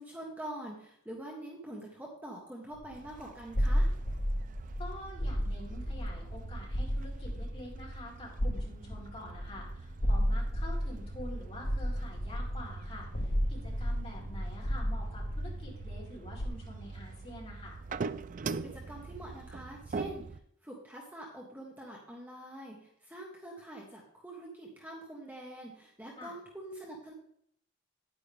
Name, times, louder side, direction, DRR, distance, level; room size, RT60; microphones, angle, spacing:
voice 1, 0.0-3.9 18.6-27.1, right 1 dB, 10° right, -2 dB, 1.5 m, -45 dB
sound 1, 2.7-3.1 3.5-16.5, equal, 45° left, 1.0 m, -33 dB
sound 2, 2.9-20.4, right 4 dB, 40° right, 0.4 m, -44 dB
voice 2, 4.8-17.8 26.2-26.3, left 1 dB, 30° left, -5 dB, 4.0 m, -47 dB
9.8 x 9.7 x 3.6 m, 0.68 s
head